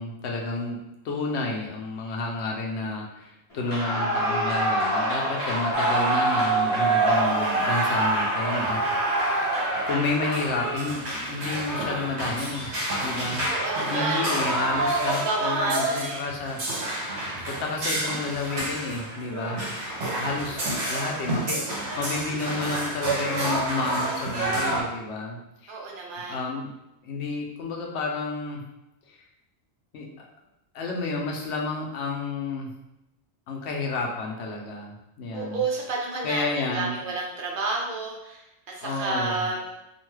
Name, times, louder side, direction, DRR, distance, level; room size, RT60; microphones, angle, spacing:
voice 1, 0.0-9.2 9.9-12.7 13.0-13.5 13.9-16.6 17.5-19.7 20.2-25.8 26.3-26.7 27.0-28.6 29.1-29.2 29.9-30.3 30.7-32.7 33.5-35.6 36.2-37.0 38.8-39.5, left 3 dB, 85° left, 0 dB, 0.9 m, -31 dB
Clapping / Cheering / Applause, 3.6-11.0, right 2 dB, 35° left, 0.8 m, -27 dB
sound 1, 5.7-24.8, right 1 dB, 80° right, 1.0 m, -28 dB
voice 2, 13.5-14.4 15.1-16.2 25.7-26.4 35.3-38.4 38.7-39.7, right 3 dB, 60° right, -1 dB, 0.7 m, -30 dB
2.6 x 2.2 x 3.1 m, 0.91 s
omnidirectional pair, 1.1 m